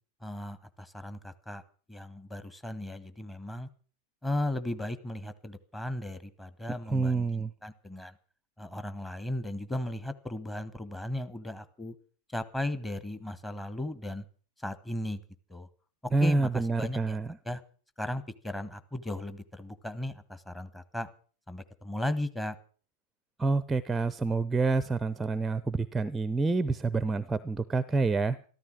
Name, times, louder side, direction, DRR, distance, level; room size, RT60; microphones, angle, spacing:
voice 1, 0.2-1.6 1.9-3.7 4.2-7.3 7.6-8.2 8.6-12.0 12.3-14.3 14.6-15.2 15.5-15.7 16.0-17.2 17.4-17.6 18.0-21.1 21.5-22.6, left 1 dB, 10° left, 12 dB, 1.2 m, -36 dB
voice 2, 6.9-7.5 16.1-17.3 23.4-28.5, right 3 dB, 10° right, 17 dB, 0.6 m, -28 dB
14.0 x 13.5 x 6.1 m, 0.41 s
figure-of-eight pair, 90°, 0 cm